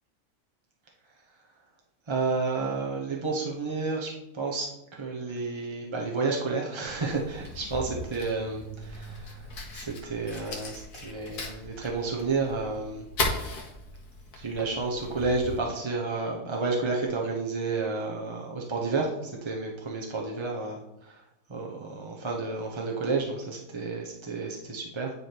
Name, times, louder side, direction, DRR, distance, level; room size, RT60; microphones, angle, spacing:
voice 1, 2.1-4.7 5.0-9.4 9.7-13.0 14.3-21.2 21.5-25.1, right 3 dB, 30° right, -1 dB, 0.6 m, -31 dB
Fire, 6.8-15.6, left 2 dB, 90° left, 1.7 m, -37 dB
9.6 x 3.2 x 4.4 m, 0.86 s
omnidirectional pair, 1.6 m